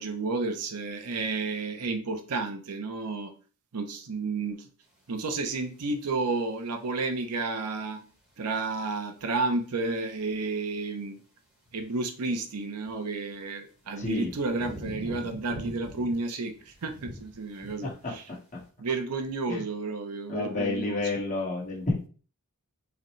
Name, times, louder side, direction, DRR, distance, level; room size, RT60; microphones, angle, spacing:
voice 1, 0.0-3.3 3.7-4.6 5.1-8.0 8.4-11.2 11.7-18.2 18.8-21.2, right 3 dB, 85° right, 6 dB, 0.7 m, -31 dB
sound 1, 5.3-5.4 8.2-8.7 9.2-9.3 11.6-11.7 12.9-13.0 13.3-13.4 13.8-16.2 16.5-18.2 18.5-18.6, equal, 5° right, 1.2 m, -43 dB
voice 2, 14.0-14.3 17.8-18.1 19.5-19.6 20.3-22.0, left 3 dB, 35° left, -4 dB, 1.4 m, -30 dB
4.8 x 2.2 x 3.1 m, 0.38 s
head